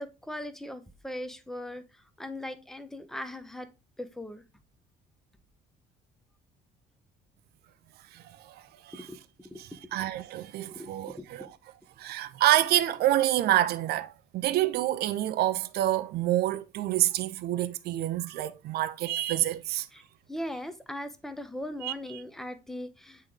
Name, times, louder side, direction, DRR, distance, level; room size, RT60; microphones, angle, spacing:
voice 1, 0.0-3.7 4.0-4.4 8.9-9.2 9.5-9.6 10.7-11.5 19.9-20.0 20.3-23.3, left 1 dB, ahead, 0.8 m, -39 dB
voice 2, 8.1-8.5 8.9-9.1 9.6-11.5 12.0-19.9 21.8-21.9, right 14 dB, 70° right, 0.6 m, -27 dB
8.1 x 3.2 x 3.7 m
cardioid pair, 110°, 17 cm